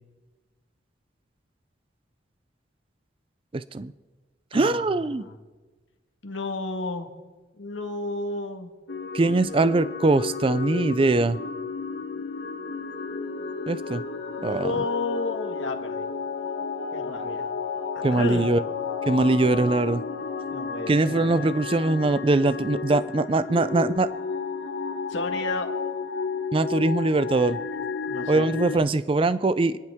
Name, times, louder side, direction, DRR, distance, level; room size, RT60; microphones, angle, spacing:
voice 1, 3.5-3.9 4.5-5.2 9.1-11.4 13.7-14.0 14.4-14.7 18.0-18.6 19.1-20.0 20.9-24.1 26.5-27.6 28.3-29.8, right 2 dB, 30° right, 15 dB, 0.4 m, -22 dB
voice 2, 4.5-5.4 6.2-7.1 7.6-8.7 14.4-16.0 16.9-17.5 18.1-18.6 20.5-21.5 25.1-25.7 28.1-28.9, left 2 dB, 85° left, 4 dB, 1.8 m, -32 dB
sound 1, 8.9-28.8, left 5 dB, 65° left, 1.3 m, -32 dB
29.5 x 11.0 x 3.6 m, 1.3 s
head